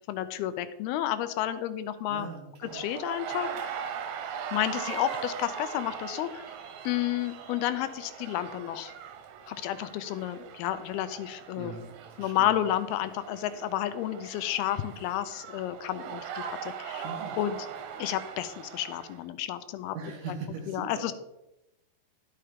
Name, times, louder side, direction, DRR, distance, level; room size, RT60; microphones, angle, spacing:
voice 1, 0.1-2.3 2.7-3.8 4.5-6.5 6.8-8.9 9.5-11.8 12.2-17.1 17.4-17.7 18.0-20.0 20.7-21.1, left 12 dB, 80° left, 12 dB, 2.4 m, -31 dB
voice 2, 2.1-2.8 11.6-11.8 12.1-12.5 17.0-17.4 19.9-21.1, right 4 dB, 65° right, 2 dB, 2.4 m, -40 dB
sound 1, 2.6-19.2, right 7 dB, 85° right, 3.0 m, -40 dB
12.0 x 5.8 x 5.0 m, 0.91 s
omnidirectional pair, 4.6 m